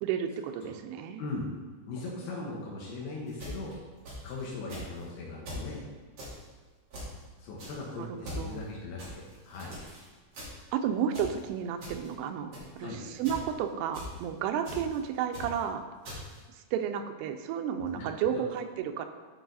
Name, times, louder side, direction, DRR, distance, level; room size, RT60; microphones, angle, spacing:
voice 1, 0.0-1.2 8.0-8.6 10.7-15.8 16.7-19.1, right 8 dB, 85° right, 7 dB, 2.6 m, -32 dB
voice 2, 1.9-3.8 4.2-5.8 7.4-9.7 12.8-13.0 17.8-18.4, left 3 dB, 75° left, -3 dB, 3.0 m, -39 dB
sound 1, 3.3-4.4 4.7-5.0 5.5-5.7 6.2-6.4 6.9-7.2 7.6-7.8 8.2-8.5 9.0-10.1 10.3-10.7 11.1-11.4 11.8-12.1 12.5-12.8 13.2-13.5 13.9-14.2 14.6-15.0 15.3-15.6 16.0-16.4, left 1 dB, 45° right, 3.5 m, -42 dB
11.0 x 4.8 x 3.9 m, 1.4 s
omnidirectional pair, 4.6 m